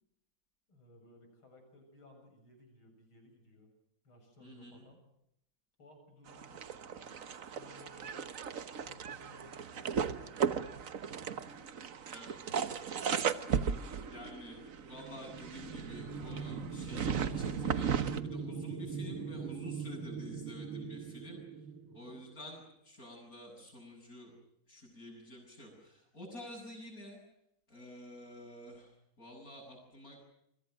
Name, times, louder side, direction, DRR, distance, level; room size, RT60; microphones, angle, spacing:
voice 1, 0.7-3.7 4.0-5.0 5.8-8.3 8.8-10.9 11.2-11.6 21.8-22.1, left 1 dB, 85° left, 5 dB, 8.5 m, -59 dB
voice 2, 4.4-4.8 12.1-12.4 14.1-21.7 21.9-24.3 24.7-27.2 27.7-30.2, left 1 dB, 40° left, -4 dB, 8.2 m, -50 dB
sound 1, 6.3-18.2, right 7 dB, 45° right, 1.3 m, -36 dB
sound 2, 14.8-22.5, right 5 dB, 75° right, 2.4 m, -42 dB
29.5 x 24.5 x 6.6 m, 0.79 s
omnidirectional pair, 2.2 m